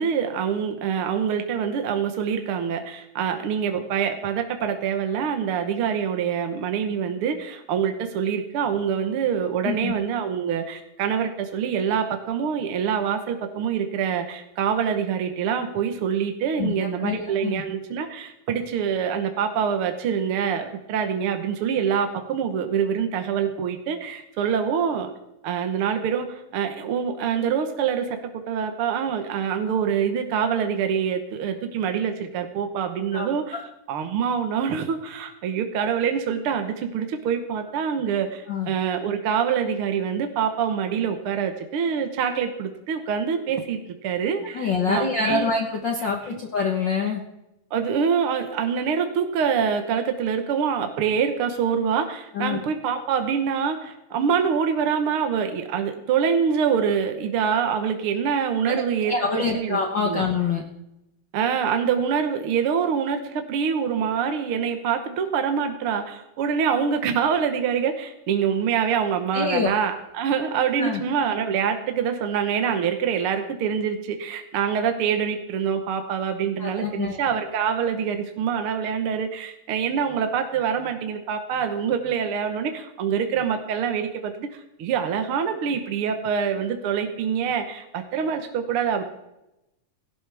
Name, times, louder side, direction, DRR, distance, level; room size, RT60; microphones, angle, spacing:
voice 1, 0.0-25.1 25.4-28.1 28.5-33.6 33.9-45.5 46.3-46.4 47.7-59.1 59.5-60.2 61.3-89.0, right 7 dB, 60° right, 6 dB, 1.5 m, -25 dB
voice 2, 16.6-17.6 33.1-33.6 38.5-38.7 44.5-47.2 52.3-52.6 58.7-60.6 69.3-69.7 70.8-71.0 76.6-77.2, left 4 dB, 65° left, 2 dB, 1.1 m, -26 dB
17.0 x 17.0 x 3.5 m, 0.91 s
omnidirectional pair, 3.8 m